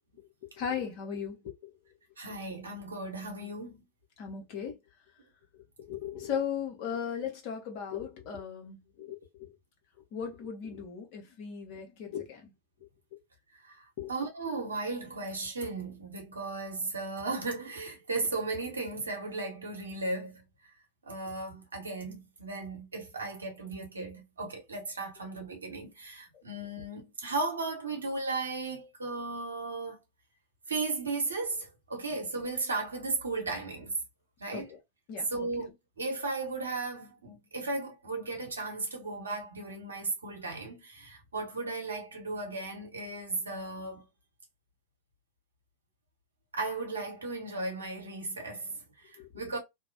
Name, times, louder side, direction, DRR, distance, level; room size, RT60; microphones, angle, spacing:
voice 1, 0.6-1.7 4.2-4.8 5.8-9.5 10.1-12.5 14.0-14.1 34.5-34.8 35.1-35.3 49.2-49.3, left 7 dB, 45° left, 0.9 m, -37 dB
voice 2, 2.2-3.9 13.6-20.4 21.0-30.0 30.7-33.9 34.4-34.7 35.3-44.0 46.5-49.6, right 3 dB, 75° right, 0.9 m, -36 dB
2.5 x 2.1 x 2.5 m
figure-of-eight pair, 90°, 0 cm